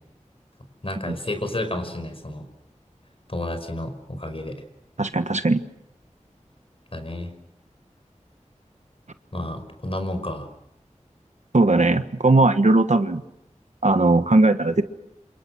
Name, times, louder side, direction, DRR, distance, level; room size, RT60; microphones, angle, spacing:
voice 1, 0.8-2.4 3.3-4.6 6.9-7.3 9.3-10.5, left 1 dB, 45° left, 7 dB, 5.4 m, -30 dB
voice 2, 5.0-5.6 11.5-13.2 13.8-14.8, right 2 dB, 65° right, 9 dB, 1.4 m, -18 dB
27.5 x 27.5 x 6.3 m, 0.82 s
wide cardioid pair, 45°, 13 cm